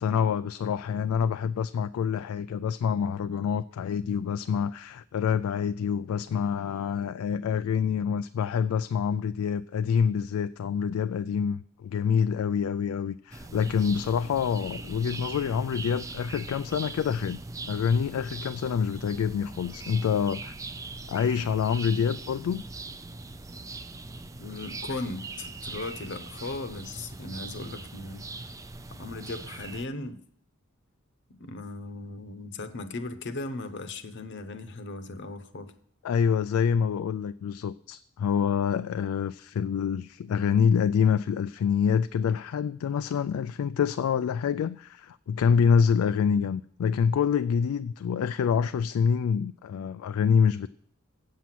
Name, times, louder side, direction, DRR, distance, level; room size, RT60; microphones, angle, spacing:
voice 1, 0.0-17.4 17.7-20.5 21.1-22.6 36.0-50.7, left 7 dB, 85° left, 0.3 m, -26 dB
sound 1, 13.3-29.9, right 3 dB, 15° right, 0.4 m, -41 dB
voice 2, 24.4-28.2 28.9-30.2 31.3-35.7, left 2 dB, 55° left, 0.9 m, -37 dB
8.2 x 7.6 x 6.0 m
head